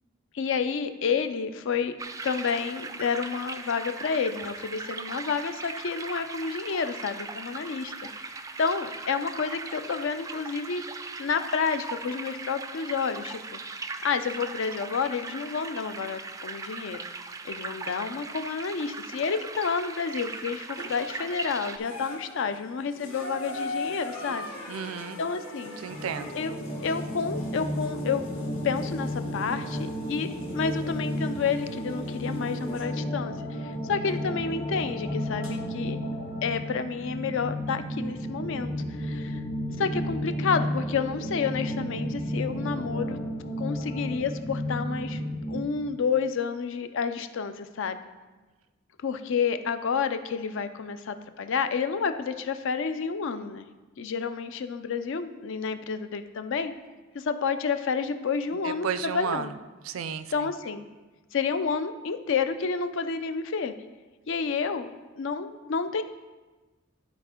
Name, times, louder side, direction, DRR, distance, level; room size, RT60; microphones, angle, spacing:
voice 1, 0.3-2.0 2.2-7.9 8.2-13.6 14.0-17.0 17.4-24.5 25.2-25.8 26.3-28.2 28.6-36.0 36.4-39.4 39.8-43.2 43.6-45.2 45.5-48.0 49.0-53.7 54.0-56.7 57.1-59.5 60.3-60.8 61.3-63.7 64.3-64.9 65.1-66.0, left 5 dB, 65° left, 10 dB, 0.5 m, -30 dB
sound 1, 2.0-21.8, right 4 dB, 15° right, 0.3 m, -39 dB
sound 2, 20.8-21.2 21.7-32.9 34.1-34.2 35.4-35.5, left 2 dB, 80° left, 1.6 m, -41 dB
voice 2, 24.7-25.2 25.8-26.4 58.6-59.5 59.8-60.3, right 7 dB, 85° right, 12 dB, 0.4 m, -32 dB
sound 3, 25.9-45.6, equal, 35° left, 1.2 m, -33 dB
12.0 x 4.2 x 3.7 m, 1.2 s
head